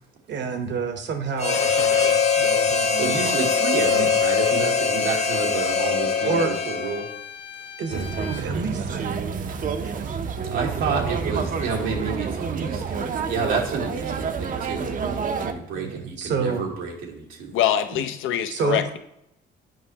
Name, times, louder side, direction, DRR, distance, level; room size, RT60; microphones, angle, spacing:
voice 1, 0.3-3.4 3.8-4.1 6.2-6.5 7.8-9.1 9.8-10.1 15.7-16.7 17.9-18.1 18.5-18.9, right 5 dB, 65° right, 7 dB, 0.9 m, -29 dB
Harmonica, 1.4-7.2, left 5 dB, 35° left, 0.6 m, -22 dB
Bowed string instrument, 1.5-8.4, left 8 dB, 60° left, 1.0 m, -38 dB
voice 2, 3.0-7.0 10.5-17.6, right 4 dB, 90° right, 0 dB, 1.3 m, -30 dB
sound 1, 7.9-15.5, right 6 dB, 45° right, 0.5 m, -28 dB
voice 3, 17.5-19.0, left 10 dB, 80° left, 9 dB, 0.5 m, -24 dB
7.8 x 5.0 x 2.8 m, 0.80 s
cardioid pair, 90°, 20 cm